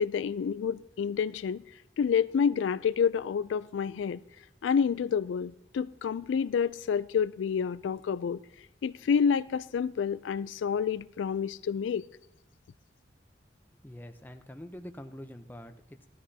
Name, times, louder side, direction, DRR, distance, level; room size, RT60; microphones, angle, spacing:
voice 1, 0.0-1.6 2.0-4.2 4.6-8.4 8.8-12.0, left 6 dB, 85° left, 0.3 m, -28 dB
voice 2, 13.8-16.1, left 1 dB, 10° left, 0.6 m, -45 dB
18.0 x 13.0 x 2.8 m
head